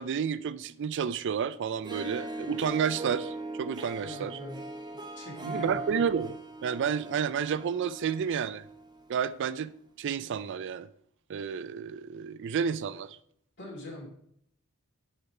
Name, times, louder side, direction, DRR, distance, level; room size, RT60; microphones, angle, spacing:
voice 1, 0.0-4.4 5.4-8.6 9.1-9.7 10.0-10.9 11.3-13.2, right 7 dB, 55° right, 0.4 m, -31 dB
Harp, 1.7-9.1, right 2 dB, 20° right, 0.7 m, -40 dB
voice 2, 4.0-4.6 5.2-5.9 13.6-14.1, left 1 dB, 55° left, 2.7 m, -42 dB
6.6 x 5.6 x 4.7 m
head